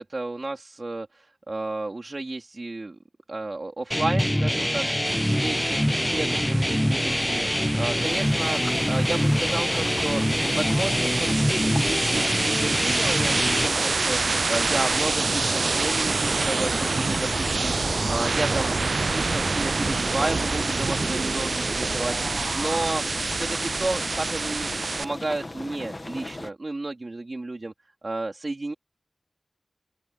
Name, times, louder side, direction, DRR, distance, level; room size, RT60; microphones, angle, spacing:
voice 1, 0.0-3.0 3.3-17.7 18.1-18.8 19.1-22.2 22.5-23.0 23.3-27.7 28.0-28.7, right 2 dB, 50° right, 3.6 m, -32 dB
sound 1, 3.9-13.7, equal, 10° left, 0.5 m, -24 dB
sound 2, 5.0-25.0, right 3 dB, 75° right, 0.3 m, -27 dB
sound 3, 8.0-26.5, left 2 dB, 35° left, 1.3 m, -37 dB
open air
wide cardioid pair, 50°, 0 cm